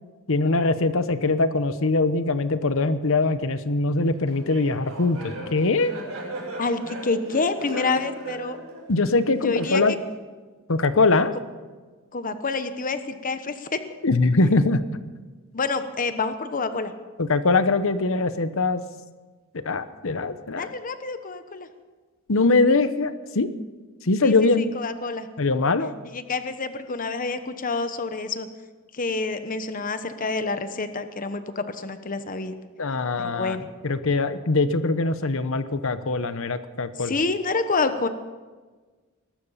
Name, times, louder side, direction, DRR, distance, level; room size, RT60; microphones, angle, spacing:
voice 1, 0.3-6.0 8.9-9.9 10.7-11.3 14.0-14.8 17.2-18.8 19.5-20.7 22.3-23.5 24.0-24.7 25.4-25.9 32.8-33.6 33.8-37.2, left 3 dB, 70° left, 12 dB, 1.0 m, -22 dB
Laughter, 4.3-10.1, right 1 dB, 85° right, 6.8 m, -37 dB
voice 2, 6.6-8.6 9.4-9.8 12.1-13.8 15.5-16.9 20.5-21.7 24.2-24.3 24.7-25.3 26.1-28.5 28.9-32.5 33.2-33.7 37.0-38.1, left 3 dB, 40° left, 10 dB, 1.0 m, -28 dB
21.0 x 12.0 x 5.7 m, 1.3 s
head